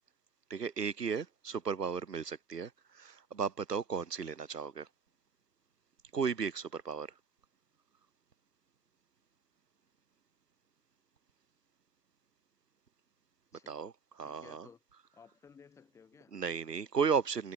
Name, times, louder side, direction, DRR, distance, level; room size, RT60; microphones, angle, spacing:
voice 1, 0.5-4.9 6.1-7.1 13.7-13.9 14.2-14.7 16.3-17.5, right 6 dB, 80° right, 4.0 m, -34 dB
voice 2, 14.2-14.8 15.1-16.4, left 6 dB, 5° left, 5.1 m, -57 dB
hypercardioid pair, 165°, 47 cm